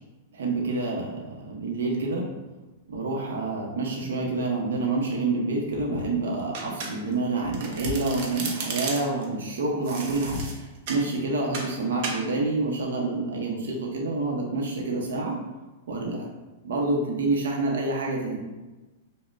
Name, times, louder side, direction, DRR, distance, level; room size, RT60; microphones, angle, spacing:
voice 1, 0.3-2.2 2.9-10.4 10.9-15.4 15.9-16.3 16.6-18.4, right 3 dB, 90° right, -1 dB, 0.7 m, -27 dB
sound 1, 4.3-4.6 5.6-6.5 7.4-8.3 9.9-10.7 11.3-11.4 11.9-12.0, left 2 dB, 80° left, 0.6 m, -39 dB
Domestic sounds home sounds, 6.5-7.2 7.5-9.2 9.8-11.1 11.5-11.7 12.0-12.2, right 4 dB, 45° right, 0.6 m, -34 dB
5.3 x 2.1 x 2.5 m, 1.1 s
supercardioid pair, 160°, 0 cm